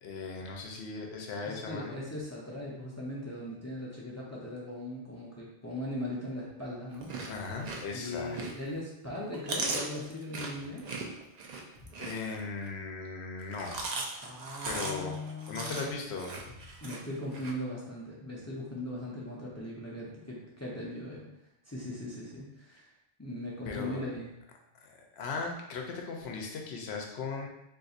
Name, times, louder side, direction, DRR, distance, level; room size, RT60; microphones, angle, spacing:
voice 1, 0.0-2.0 7.3-8.4 12.0-13.8 14.1-14.2 14.7-15.1 15.5-16.5 23.7-24.0 24.7-27.5, left 4 dB, 70° left, 1 dB, 0.9 m, -38 dB
voice 2, 1.5-7.1 7.9-10.9 14.2-16.0 16.8-21.3 21.7-22.9 23.2-24.4, left 1 dB, 20° left, -6 dB, 0.4 m, -39 dB
Chewing mastication, 6.9-8.8 9.1-12.7 13.4-17.5, right 3 dB, 55° right, 0.5 m, -38 dB
4.0 x 2.6 x 2.4 m, 0.87 s
omnidirectional pair, 1.2 m